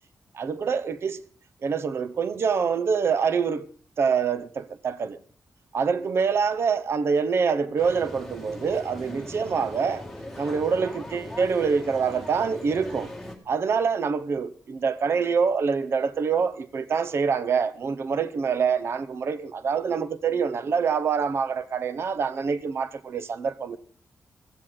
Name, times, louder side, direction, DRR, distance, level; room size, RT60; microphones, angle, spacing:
voice 1, 0.3-1.2 1.6-3.7 4.0-5.2 5.7-10.0 10.4-13.1 13.5-23.8, right 6 dB, 50° right, 0.8 m, -25 dB
sound 1, 7.8-13.4, left 1 dB, ahead, 1.9 m, -39 dB
15.5 x 14.5 x 3.9 m
wide cardioid pair, 180°, 6 cm